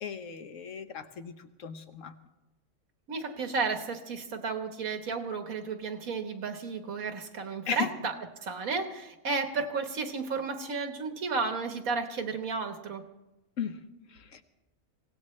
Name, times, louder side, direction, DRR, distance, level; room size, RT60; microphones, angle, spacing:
voice 1, 0.0-1.3 1.6-2.1 7.7-7.9 13.6-13.8 14.1-14.4, left 7 dB, 70° left, 9 dB, 1.3 m, -36 dB
voice 2, 3.1-13.0, right 4 dB, 90° right, 6 dB, 1.8 m, -33 dB
24.0 x 17.5 x 3.2 m, 1.0 s
omnidirectional pair, 1.4 m